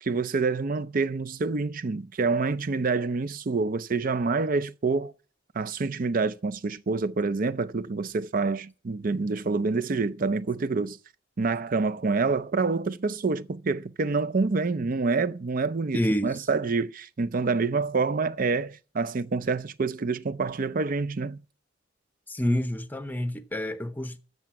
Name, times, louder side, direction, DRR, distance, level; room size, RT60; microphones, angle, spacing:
voice 1, 0.0-5.1 5.5-11.0 11.4-21.4, right 4 dB, 45° right, 0.5 m, -27 dB
voice 2, 15.9-16.4 22.3-24.2, equal, 10° left, 0.7 m, -28 dB
13.5 x 6.9 x 5.9 m
head